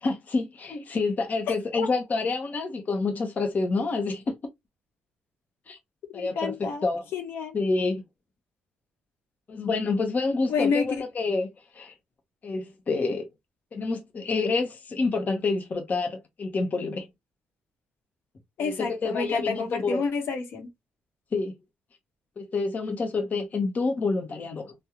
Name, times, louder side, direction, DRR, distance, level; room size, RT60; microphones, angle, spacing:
voice 1, 0.0-4.3 5.7-5.8 6.1-6.5 6.8-7.0 7.5-8.0 9.5-11.5 11.7-11.9 12.4-13.3 13.7-17.1 18.6-20.0 21.3-21.5 22.4-24.7, left 3 dB, 40° left, 0.8 m, -28 dB
voice 2, 6.1-6.8 7.1-7.5 10.5-11.0 18.6-20.7, left 5 dB, 70° left, 1.0 m, -29 dB
3.5 x 2.2 x 2.9 m
cardioid pair, 85°, 4 cm